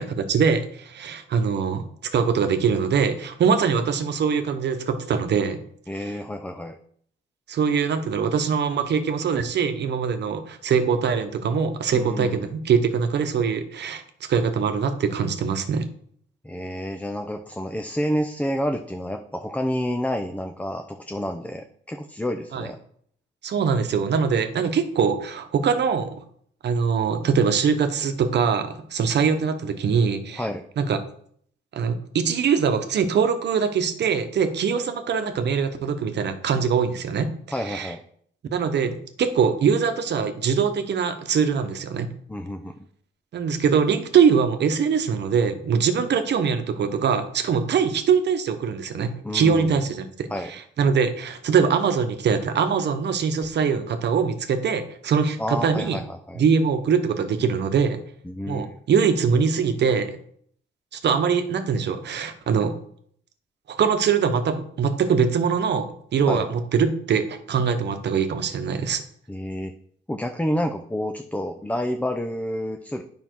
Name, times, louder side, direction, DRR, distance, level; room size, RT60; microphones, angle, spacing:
voice 1, 0.0-1.8 2.1-5.6 7.5-14.0 14.3-15.9 22.5-22.7 23.4-26.2 26.6-30.4 30.8-31.0 31.7-37.3 37.6-37.9 38.5-42.1 43.3-50.3 50.8-56.0 56.4-58.0 58.5-60.2 60.9-62.7 63.7-65.9 66.1-69.0, right 6 dB, 60° right, 8 dB, 1.1 m, -22 dB
voice 2, 5.9-6.8 11.9-12.5 16.4-22.8 30.4-30.6 37.5-38.0 42.3-42.9 49.2-49.8 50.3-50.5 55.4-56.4 58.2-58.8 66.3-66.5 69.3-69.7 70.1-73.0, equal, 5° left, 5 dB, 0.6 m, -29 dB
9.1 x 5.6 x 4.6 m, 0.63 s
cardioid pair, 90°, 20 cm